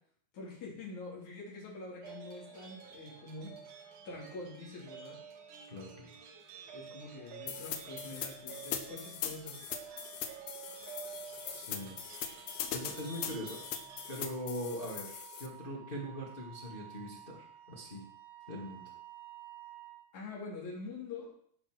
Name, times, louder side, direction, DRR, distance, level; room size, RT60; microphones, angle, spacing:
voice 1, 0.3-3.5 4.1-5.2 6.7-9.6 20.1-21.3, left 3 dB, 45° left, -3 dB, 4.7 m, -45 dB
sound 1, 2.0-14.2, right 6 dB, 60° right, 2.6 m, -50 dB
voice 2, 5.7-6.1 11.5-12.0 12.4-13.6 14.1-18.0 18.5-18.9, equal, 25° left, -2 dB, 1.2 m, -42 dB
sound 2, 7.5-15.5, left 9 dB, 70° left, 2.7 m, -40 dB
Wind instrument woodwind instrument, 10.6-20.1, right 10 dB, 75° right, 3.2 m, -53 dB
16.5 x 5.8 x 6.2 m, 0.62 s
omnidirectional pair, 4.7 m